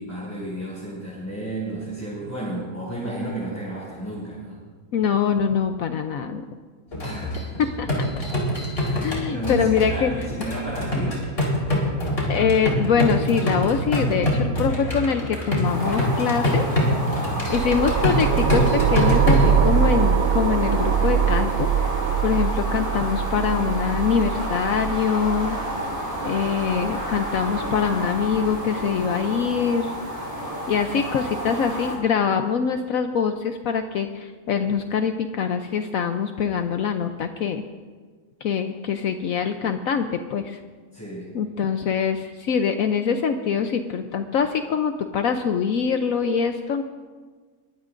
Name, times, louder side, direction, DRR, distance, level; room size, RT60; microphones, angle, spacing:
voice 1, 0.0-4.6 7.0-7.6 8.8-11.2 14.0-14.8 17.1-17.5 25.6-26.0 40.9-41.3, right 1 dB, 10° left, -10 dB, 5.8 m, -33 dB
voice 2, 4.9-6.4 7.6-7.9 9.0-10.1 12.3-16.8 17.5-21.7 22.2-25.6 26.2-29.9 30.7-37.6 38.4-40.6 41.3-46.8, left 6 dB, 70° left, 7 dB, 1.1 m, -24 dB
sound 1, 6.9-19.6, equal, 40° left, 4.4 m, -25 dB
sound 2, 15.6-32.0, right 1 dB, 25° right, 5.2 m, -30 dB
sound 3, 17.5-28.6, right 8 dB, 80° right, 1.0 m, -24 dB
22.5 x 17.5 x 2.6 m, 1.5 s
omnidirectional pair, 1.6 m